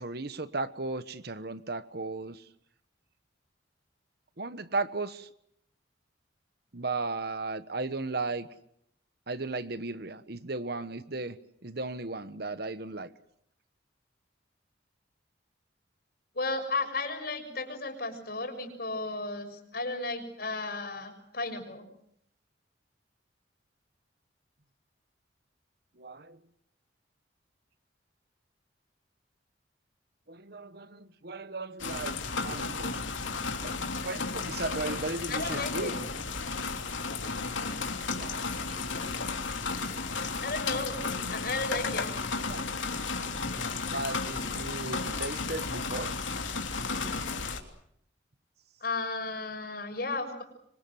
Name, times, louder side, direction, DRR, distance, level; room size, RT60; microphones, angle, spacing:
voice 1, 0.0-2.4 4.4-5.3 6.7-8.5 9.3-11.3 11.6-13.1 26.0-26.4 30.3-32.2 32.4-33.0 33.6-35.9 38.0-38.4 42.5-42.6 43.9-46.2, right 3 dB, 55° right, 13 dB, 1.2 m, -36 dB
voice 2, 16.3-21.9 35.3-36.0 40.4-41.0 41.3-42.1 48.8-50.4, left 3 dB, 50° left, 6 dB, 6.6 m, -34 dB
sound 1, 31.8-47.6, left 4 dB, 80° left, 3.3 m, -33 dB
26.5 x 25.0 x 7.8 m, 0.73 s
head